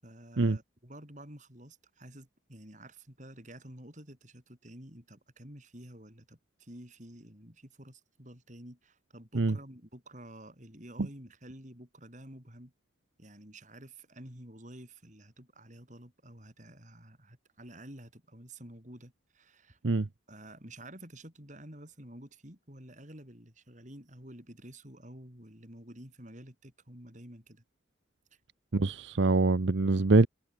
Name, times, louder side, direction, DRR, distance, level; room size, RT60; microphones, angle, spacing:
voice 1, 0.0-12.7 13.2-19.8 20.3-27.6, right 1 dB, 40° right, 6.8 m, -50 dB
voice 2, 28.7-30.3, right 3 dB, 70° right, 0.8 m, -24 dB
head